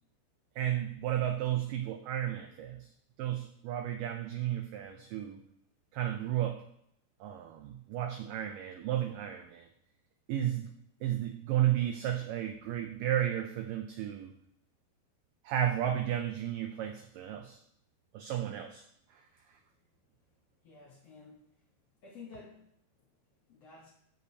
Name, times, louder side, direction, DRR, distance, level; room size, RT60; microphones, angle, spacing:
voice 1, 0.6-2.9 3.2-5.4 5.9-6.6 7.2-9.7 10.3-10.7 11.0-14.3 15.4-17.6 18.1-18.8 19.1-19.6, right 11 dB, 90° right, 5 dB, 1.9 m, -33 dB
voice 2, 20.6-21.5 22.0-22.7 23.5-23.9, left 4 dB, 65° left, -4 dB, 1.6 m, -51 dB
13.5 x 5.0 x 2.8 m, 0.72 s
omnidirectional pair, 4.5 m